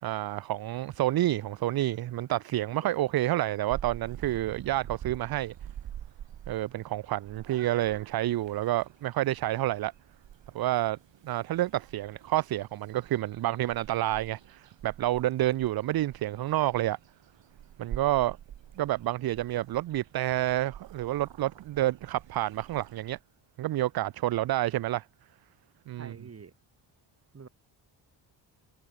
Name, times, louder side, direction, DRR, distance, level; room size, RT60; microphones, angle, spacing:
voice 1, 0.0-5.5 6.5-9.9 10.5-11.0 11.2-17.0 17.8-18.4 18.8-23.2 23.6-25.1 25.9-26.1, right 15 dB, 50° right, 0.5 m, -29 dB
Purr / Meow, 3.7-23.2, right 10 dB, 70° right, 3.1 m, -47 dB
voice 2, 26.0-26.5 27.3-27.5, right 5 dB, 30° right, 2.7 m, -46 dB
cardioid pair, 135°, 47 cm